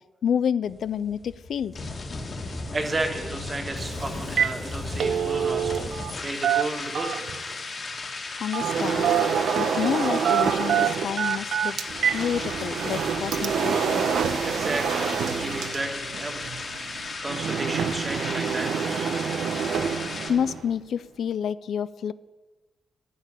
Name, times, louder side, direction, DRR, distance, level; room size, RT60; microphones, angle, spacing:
voice 1, 0.2-1.7 8.4-9.1 9.6-11.8 12.1-14.0 20.3-22.1, left 8 dB, 60° left, 17 dB, 0.3 m, -28 dB
sound 1, 0.6-20.3, left 3 dB, 35° left, 2.1 m, -35 dB
voice 2, 2.7-7.5 14.4-16.5 16.9-19.1, right 2 dB, 20° right, 4 dB, 1.8 m, -33 dB
Telephone, 3.8-3.9 4.2-4.6 4.8-6.1 6.4-7.4 8.5-8.8 9.0-9.7 10.2-12.2 12.6-12.7 13.3-13.5, right 9 dB, 60° right, 0.5 m, -25 dB
sound 2, 8.6-11.2 11.9-20.7, right 6 dB, 75° right, 1.0 m, -28 dB
13.5 x 6.7 x 9.9 m, 1.2 s
wide cardioid pair, 175°, 0 cm